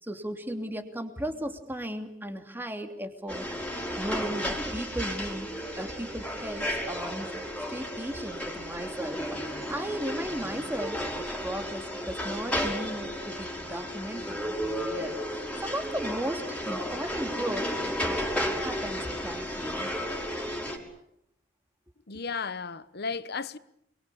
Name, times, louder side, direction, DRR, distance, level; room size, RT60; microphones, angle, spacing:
voice 1, 0.0-3.6 4.0-5.5 5.8-7.3 7.7-15.2 15.6-18.2 18.6-19.9, equal, 10° right, 3.0 m, -36 dB
sound 1, 3.3-20.8, equal, 5° left, 5.2 m, -33 dB
voice 2, 22.1-23.6, left 5 dB, 55° left, 1.1 m, -34 dB
28.5 x 22.5 x 8.6 m
head